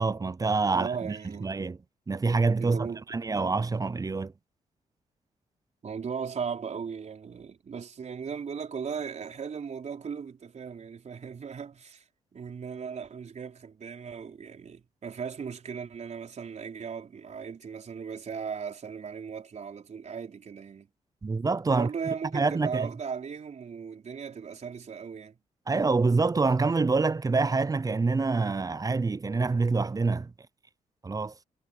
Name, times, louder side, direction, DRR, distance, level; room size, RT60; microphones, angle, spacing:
voice 1, 0.0-1.8 2.1-4.3 21.2-21.9 22.3-22.9 25.7-30.3 31.0-31.3, right 3 dB, 25° right, 0.6 m, -26 dB
voice 2, 0.7-1.5 2.6-3.0 5.8-12.0 12.3-20.9 21.7-25.4, right 6 dB, 55° right, 4.5 m, -37 dB
cardioid pair, 65°, 14 cm